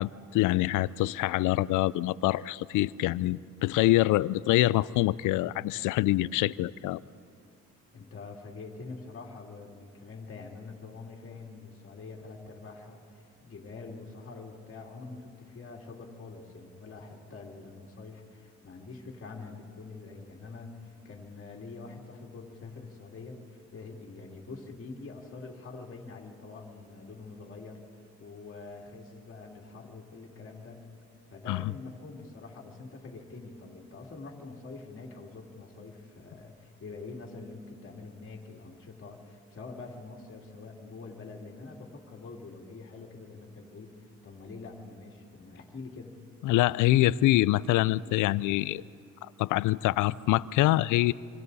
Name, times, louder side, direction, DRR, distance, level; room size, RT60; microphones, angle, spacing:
voice 1, 0.0-7.0 31.5-31.6 46.4-48.8 49.4-51.1, left 16 dB, 85° left, 20 dB, 0.5 m, -25 dB
voice 2, 7.9-30.8 31.3-46.2, left 3 dB, 45° left, -1 dB, 2.8 m, -45 dB
25.5 x 25.5 x 4.1 m, 2.4 s
cardioid pair, 90°, 30 cm